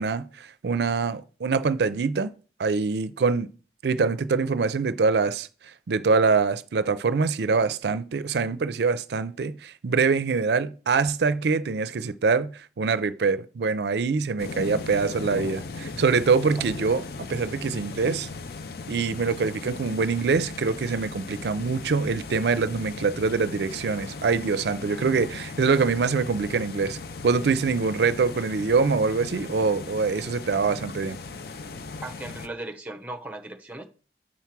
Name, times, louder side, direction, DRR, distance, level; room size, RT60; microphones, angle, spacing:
voice 1, 0.0-2.3 2.6-3.5 3.8-18.3 18.9-27.0 27.2-31.2, right 4 dB, 70° right, 0.4 m, -24 dB
sound 1, 14.4-32.5, left 3 dB, 60° left, 0.5 m, -38 dB
voice 2, 32.0-33.8, right 2 dB, 10° right, 0.9 m, -37 dB
7.4 x 4.7 x 5.9 m
head